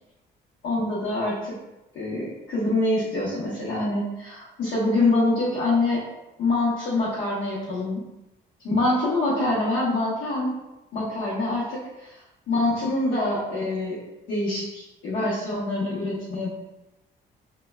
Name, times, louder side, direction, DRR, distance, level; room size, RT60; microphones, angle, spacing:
voice 1, 0.6-1.6 1.9-6.0 6.4-8.0 8.6-10.5 10.9-12.2 12.5-14.0 14.3-16.5, left 2 dB, 70° left, -10 dB, 0.9 m, -25 dB
2.9 x 2.1 x 2.2 m, 0.96 s
cardioid pair, 90°, 20 cm